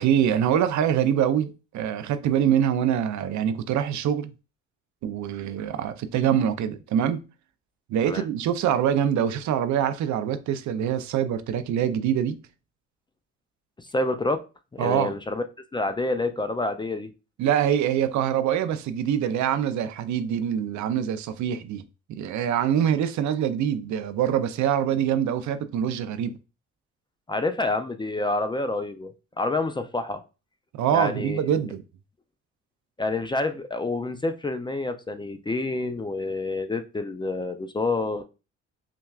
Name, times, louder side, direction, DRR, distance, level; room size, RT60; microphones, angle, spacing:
voice 1, 0.0-4.3 5.0-7.2 7.9-12.4 14.8-15.1 17.4-21.8 22.1-26.4 30.7-31.8, right 9 dB, 70° right, 0.5 m, -24 dB
voice 2, 13.8-14.4 14.7-15.4 15.7-17.1 27.3-30.2 30.9-31.7 33.0-38.2, left 2 dB, 15° left, 0.4 m, -28 dB
5.7 x 2.3 x 2.3 m
cardioid pair, 90°, 30 cm